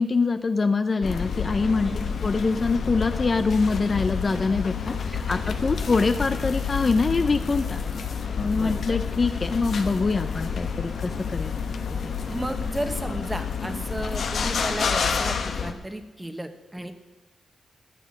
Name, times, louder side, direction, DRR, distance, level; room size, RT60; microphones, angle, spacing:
voice 1, 0.0-7.8 8.4-11.5, left 4 dB, 40° left, 10 dB, 0.6 m, -24 dB
sound 1, 1.0-15.7, left 6 dB, 70° left, 1.0 m, -29 dB
voice 2, 1.8-2.2 5.1-5.4 8.5-9.0 12.3-16.9, right 1 dB, 10° right, 8 dB, 1.2 m, -34 dB
sound 2, 3.7-14.7, right 2 dB, 60° right, 1.9 m, -45 dB
13.5 x 8.0 x 6.5 m, 1.1 s
cardioid pair, 85°, 0 cm